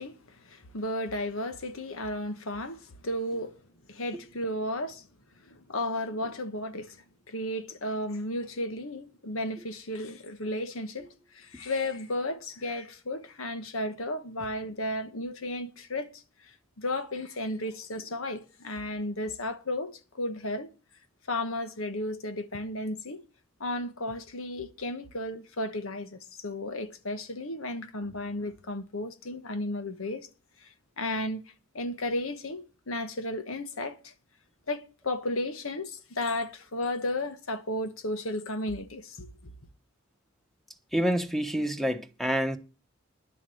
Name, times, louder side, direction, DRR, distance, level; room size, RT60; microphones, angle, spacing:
voice 1, 0.0-3.6 3.9-5.1 5.4-20.7 21.3-23.2 23.6-30.3 30.6-31.4 31.7-34.1 34.7-39.5, left 1 dB, 85° left, 1.4 m, -34 dB
voice 2, 40.9-42.6, equal, ahead, 1.2 m, -27 dB
11.0 x 7.3 x 7.9 m
head